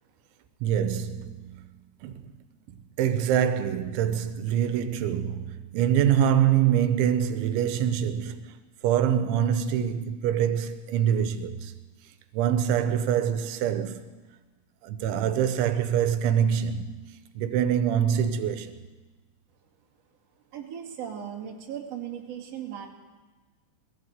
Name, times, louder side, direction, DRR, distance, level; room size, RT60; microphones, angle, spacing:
voice 1, 0.6-1.7 2.0-2.3 3.0-8.5 8.8-11.7 12.3-14.1 14.8-16.9 17.4-18.8, right 9 dB, 85° right, 3.2 m, -25 dB
voice 2, 20.5-22.9, right 9 dB, 40° right, 3.0 m, -37 dB
20.0 x 16.0 x 8.1 m
omnidirectional pair, 5.3 m